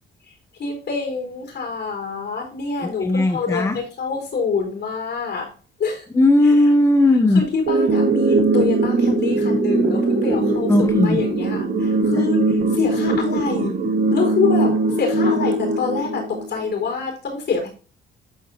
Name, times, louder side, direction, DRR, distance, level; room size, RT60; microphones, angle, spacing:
voice 1, 0.6-5.5 5.8-6.0 7.3-10.7 11.0-12.4 12.7-13.8 14.1-14.7 15.0-17.7, left 5 dB, 60° left, 4.5 m, -26 dB
voice 2, 2.8-3.8 6.1-7.5 10.7-11.3 12.1-12.3, left 1 dB, 15° left, 0.7 m, -17 dB
sound 1, 7.7-16.7, right 2 dB, 55° right, 1.9 m, -20 dB
12.0 x 4.5 x 2.9 m
cardioid pair, 90°, 20 cm